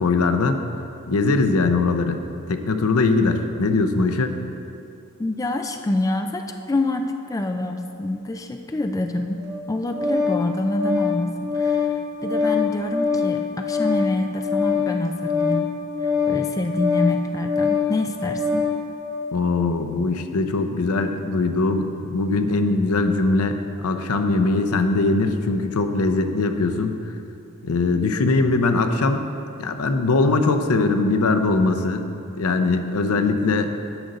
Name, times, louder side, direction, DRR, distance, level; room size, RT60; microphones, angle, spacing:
voice 1, 0.0-0.6 1.1-2.2 2.5-4.3 19.3-23.6 23.8-27.0 27.6-29.2 29.6-32.0 32.4-33.7, left 3 dB, 80° left, 7 dB, 0.6 m, -21 dB
voice 2, 5.2-9.4 9.7-11.9 12.2-15.7 16.0-18.7, left 2 dB, 15° left, 5 dB, 0.3 m, -26 dB
Organ, 9.4-18.8, left 5 dB, 15° right, 1.1 m, -24 dB
10.0 x 6.6 x 4.1 m, 2.7 s
head